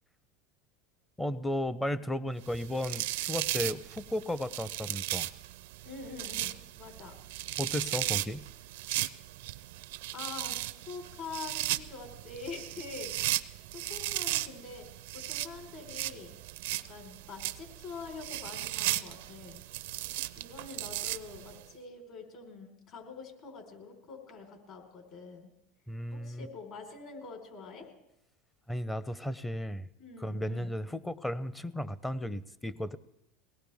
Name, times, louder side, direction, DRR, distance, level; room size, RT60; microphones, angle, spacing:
voice 1, 1.2-5.3 7.6-8.4 25.9-26.5 28.7-29.9 30.2-33.0, left 1 dB, 10° left, 15 dB, 0.6 m, -34 dB
sound 1, 2.5-21.6, right 16 dB, 80° right, 0.5 m, -36 dB
voice 2, 5.8-7.1 10.1-13.5 13.7-16.4 16.7-19.6 20.4-25.5 26.1-27.9 30.0-30.7, left 4 dB, 50° left, 2 dB, 4.3 m, -45 dB
22.0 x 18.0 x 3.5 m, 0.83 s
supercardioid pair, 120°, 0 cm